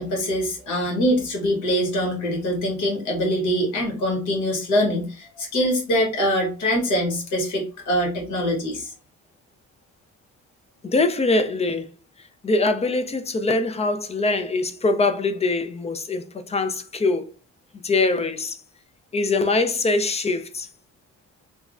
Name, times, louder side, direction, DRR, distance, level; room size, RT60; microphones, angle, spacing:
voice 1, 0.0-8.9, equal, 75° left, 1.3 m, -23 dB
voice 2, 10.8-11.9 12.4-17.3 17.8-18.6 19.1-20.7, left 3 dB, 20° left, 0.3 m, -23 dB
3.3 x 2.1 x 2.4 m
cardioid pair, 90°, 30 cm